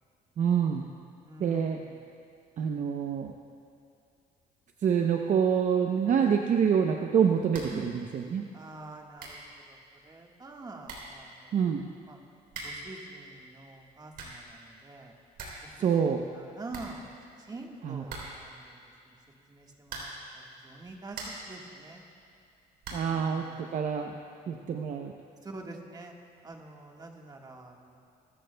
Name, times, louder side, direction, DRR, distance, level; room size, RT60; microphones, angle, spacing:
voice 1, 0.4-0.9 1.4-1.8 2.6-3.3 4.8-8.5 11.5-11.9 15.8-16.2 17.8-18.0 22.9-24.1 24.5-25.1, right 7 dB, 45° right, 3 dB, 0.7 m, -26 dB
voice 2, 1.2-2.1 6.1-6.5 7.7-7.9 8.5-11.7 12.1-12.2 12.6-15.1 15.6-17.1 17.4-19.2 19.5-22.0 25.4-26.1 26.4-28.0, right 2 dB, 25° right, 1 dB, 1.5 m, -46 dB
sound 1, 7.5-7.9 8.1-8.2 8.9-9.0 9.2-9.5 10.5-10.6 10.8-11.2 12.5-12.9 13.9-14.5 14.9-15.0 15.2-15.7 16.0-16.1 16.3-16.4 16.7-17.5 18.1-18.6 19.8-20.3 20.8-21.6 22.8-23.2, right 3 dB, 70° right, 3.4 m, -42 dB
23.0 x 13.5 x 2.2 m, 2.4 s
cardioid pair, 110°, 17 cm